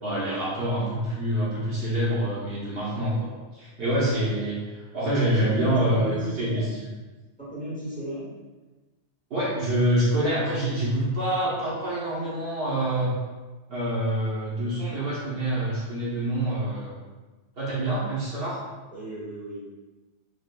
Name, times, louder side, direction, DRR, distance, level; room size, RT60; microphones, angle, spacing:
voice 1, 0.0-4.6 4.9-6.9 9.3-13.1 13.7-16.9 17.6-18.6, right 1 dB, 60° right, -8 dB, 1.1 m, -26 dB
voice 2, 5.0-6.7 7.4-8.3 18.9-19.6, right 1 dB, 5° left, -10 dB, 1.3 m, -34 dB
4.9 x 2.5 x 2.2 m, 1.3 s
omnidirectional pair, 1.2 m